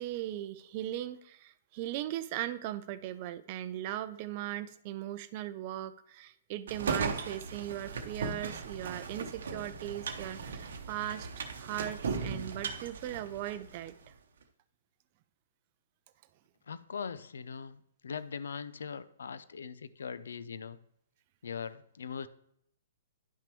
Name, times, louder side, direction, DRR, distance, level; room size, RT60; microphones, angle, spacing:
voice 1, 0.0-11.3 11.6-14.1, right 13 dB, 40° right, 12 dB, 0.4 m, -38 dB
sound 1, 6.7-13.9, right 5 dB, 65° right, 0.8 m, -37 dB
voice 2, 16.7-20.8 21.4-22.3, left 6 dB, 70° left, 14 dB, 0.4 m, -41 dB
10.0 x 5.8 x 3.1 m, 0.72 s
figure-of-eight pair, 120°, 0 cm